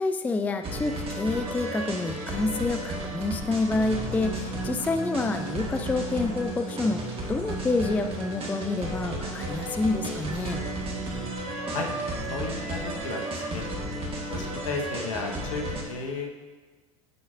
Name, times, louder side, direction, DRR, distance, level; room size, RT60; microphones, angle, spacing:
voice 1, 0.0-10.6, left 3 dB, 10° left, 7 dB, 0.3 m, -28 dB
sound 1, 0.6-15.8, right 1 dB, 35° right, 1.6 m, -33 dB
voice 2, 12.3-13.7 14.3-16.4, left 3 dB, 70° left, 2 dB, 1.2 m, -34 dB
9.2 x 6.3 x 2.5 m, 1.3 s
figure-of-eight pair, 80°, 17 cm